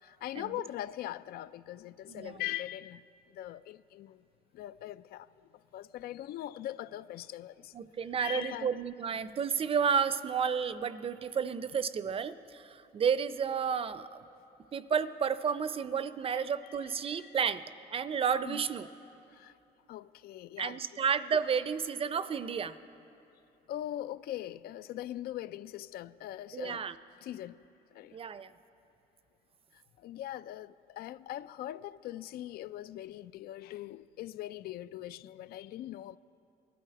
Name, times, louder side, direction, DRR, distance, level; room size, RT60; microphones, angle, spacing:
voice 1, 0.0-4.2 4.5-7.7 8.2-8.7 16.2-17.4 18.4-18.6 19.3-19.5 19.9-20.8 23.7-26.8 27.2-28.2 29.7-36.2, left 13 dB, 65° left, 0.4 m, -41 dB
voice 2, 2.1-2.4 7.7-14.2 14.7-17.6 17.9-18.9 20.6-22.8 26.5-26.9 28.1-28.5, right 7 dB, 35° right, 0.5 m, -31 dB
20.0 x 12.0 x 4.7 m
cardioid pair, 110°, 17 cm